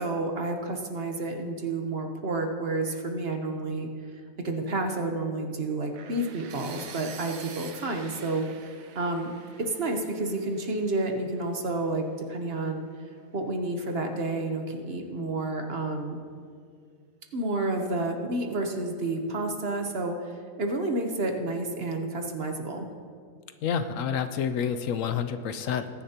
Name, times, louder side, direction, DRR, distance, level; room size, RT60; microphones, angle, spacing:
voice 1, 0.0-3.9 4.4-9.3 9.6-12.9 13.3-16.2 17.3-22.9, right 2 dB, 50° right, 4 dB, 1.1 m, -30 dB
sound 1, 6.0-11.9, right 7 dB, 75° right, 1.2 m, -47 dB
voice 2, 23.6-25.9, left 7 dB, 70° left, 10 dB, 0.9 m, -28 dB
20.5 x 10.0 x 2.9 m, 2.2 s
omnidirectional pair, 1.5 m